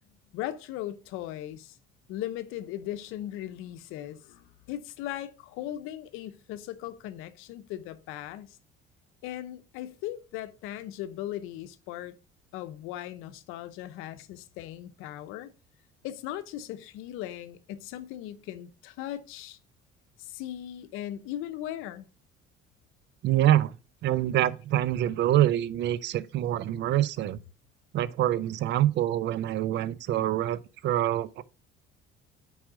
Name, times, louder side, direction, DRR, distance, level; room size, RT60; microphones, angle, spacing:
voice 1, 0.3-1.8 2.1-8.6 9.2-12.1 12.5-15.5 16.0-19.6 20.2-22.1, left 13 dB, 85° left, 0.8 m, -38 dB
voice 2, 23.2-23.7 24.0-27.4 27.9-31.4, right 13 dB, 60° right, 0.5 m, -25 dB
6.3 x 4.9 x 4.9 m
cardioid pair, 125°, 20 cm